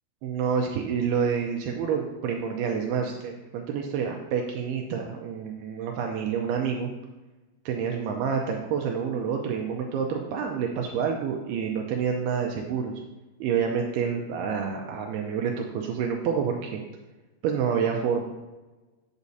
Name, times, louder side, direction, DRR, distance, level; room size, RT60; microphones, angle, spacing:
voice 1, 0.2-6.9 7.7-12.9 13.4-16.8 17.4-18.2, right 6 dB, 90° right, 2 dB, 2.3 m, -28 dB
8.3 x 8.1 x 2.7 m, 1.1 s
omnidirectional pair, 5.1 m